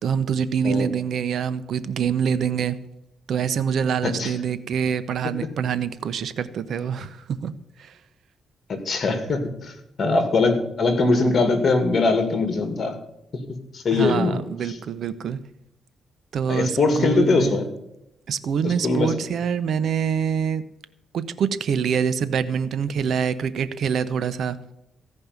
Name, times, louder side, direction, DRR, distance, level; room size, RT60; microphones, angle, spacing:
voice 1, 0.0-2.8 3.3-7.5 7.8-7.9 13.9-15.4 16.3-17.6 18.3-20.6 21.1-24.6, right 7 dB, 65° right, 14 dB, 0.8 m, -25 dB
voice 2, 8.7-9.5 10.0-13.0 13.3-13.4 13.7-14.4 16.5-17.7 18.6-19.1, left 3 dB, 45° left, 7 dB, 2.3 m, -21 dB
16.0 x 5.4 x 9.4 m, 0.83 s
cardioid pair, 115°, 0 cm